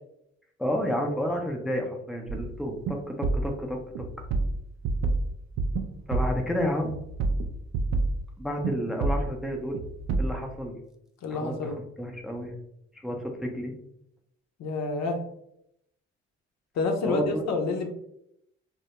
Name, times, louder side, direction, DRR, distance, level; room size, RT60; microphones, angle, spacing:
voice 1, 0.6-4.0 6.1-7.0 8.4-9.8 10.2-10.8 11.3-12.5 12.9-13.7 17.0-17.5, equal, ahead, 2 dB, 0.5 m, -31 dB
sound 1, 2.3-2.6 2.8-3.0 3.2-3.5 4.0-5.9 6.1-6.4 6.8-8.2 8.6-8.7 9.0-9.3 9.7-10.3, right 3 dB, 65° right, 0.4 m, -28 dB
voice 2, 11.2-11.8 14.6-15.2 16.7-17.9, left 3 dB, 65° left, 4 dB, 0.6 m, -28 dB
2.2 x 2.1 x 2.8 m, 0.76 s
supercardioid pair, 55°, 30 cm